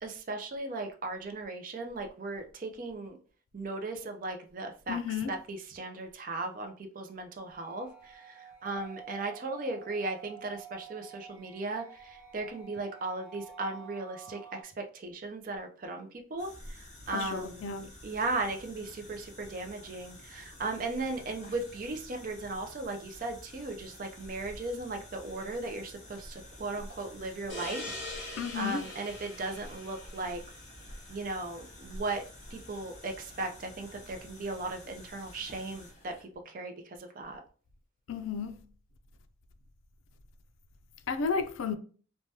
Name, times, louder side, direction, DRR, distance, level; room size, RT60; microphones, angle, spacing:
voice 1, 0.0-3.2 3.5-16.5 17.1-17.7 18.0-27.8 28.1-30.4 31.1-32.2 32.5-36.1 36.5-36.7 37.0-37.4, right 2 dB, 45° right, 0.4 m, -37 dB
voice 2, 4.9-5.4 17.1-17.9 28.4-28.8 38.1-38.6 41.1-41.7, left 5 dB, 80° left, 0.4 m, -33 dB
sound 1, 7.5-14.6, right 7 dB, 10° left, 0.9 m, -50 dB
sound 2, 16.4-36.3, left 1 dB, 35° left, 0.9 m, -50 dB
sound 3, 27.5-30.9, left 2 dB, 60° left, 1.5 m, -42 dB
3.2 x 2.2 x 2.7 m
head